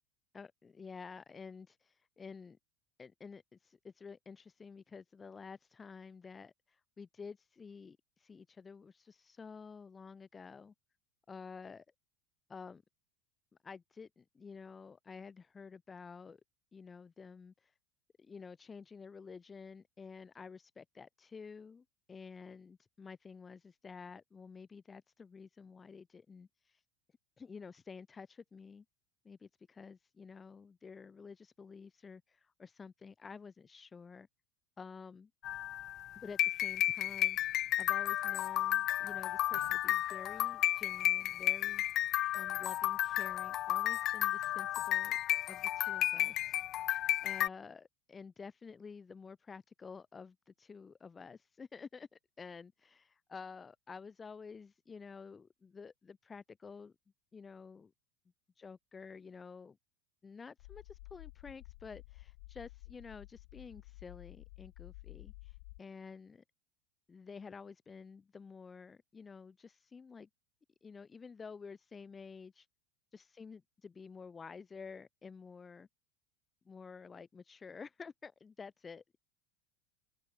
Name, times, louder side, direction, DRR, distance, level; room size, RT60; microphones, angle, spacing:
voice 1, 0.3-2.6 3.0-10.7 11.3-11.8 12.5-12.8 13.6-16.4 16.7-17.7 18.2-26.8 27.4-28.8 29.2-34.3 34.8-35.3 36.1-41.8 42.3-45.2 45.5-46.6 47.2-56.9 57.3-57.9 58.6-59.8 60.2-66.4 67.1-70.3 70.8-72.7 73.1-75.9 76.6-79.2, left 5 dB, 15° left, 1.5 m, -51 dB
sound 1, 35.4-47.5, left 13 dB, 30° left, 0.4 m, -33 dB
sound 2, 39.5-40.1 41.9-42.1 42.5-42.9, right 16 dB, 90° right, 6.8 m, -58 dB
sound 3, 60.6-65.8, left 24 dB, 60° left, 1.0 m, -52 dB
supercardioid pair, 170°, 0 cm